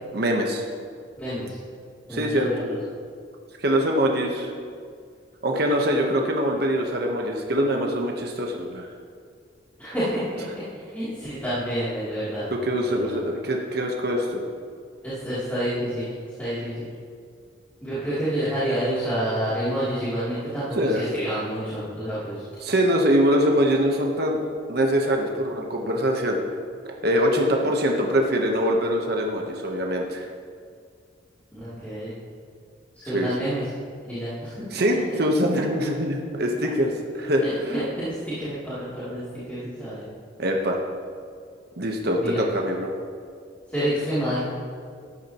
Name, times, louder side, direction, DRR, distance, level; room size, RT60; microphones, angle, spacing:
voice 1, 0.1-0.6 2.1-2.7 3.6-4.5 5.4-8.9 12.5-14.4 20.8-21.0 22.6-24.4 24.7-26.4 27.0-30.3 33.1-33.3 34.7-37.4 40.4-40.8 41.8-42.9, equal, 55° right, 1 dB, 1.1 m, -23 dB
voice 2, 1.2-1.5 2.1-2.8 9.8-12.5 12.8-13.2 15.0-16.1 16.4-16.8 17.8-22.4 31.5-32.1 32.9-33.6 34.0-34.6 37.7-40.1 42.2-42.4 43.7-44.5, equal, 10° left, -14 dB, 3.0 m, -28 dB
13.5 x 11.0 x 3.0 m, 2.1 s
head